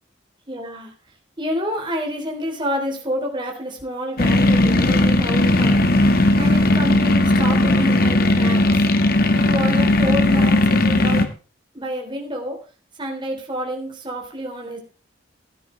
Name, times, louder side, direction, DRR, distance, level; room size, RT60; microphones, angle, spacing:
voice 1, 0.5-0.9 1.4-5.9 6.4-8.6 9.3-11.2 11.7-12.6 13.0-14.8, equal, 25° right, 1 dB, 3.6 m, -28 dB
sound 1, 4.2-11.3, left 1 dB, 50° left, 1.6 m, -17 dB
15.5 x 9.6 x 3.3 m, 0.35 s
head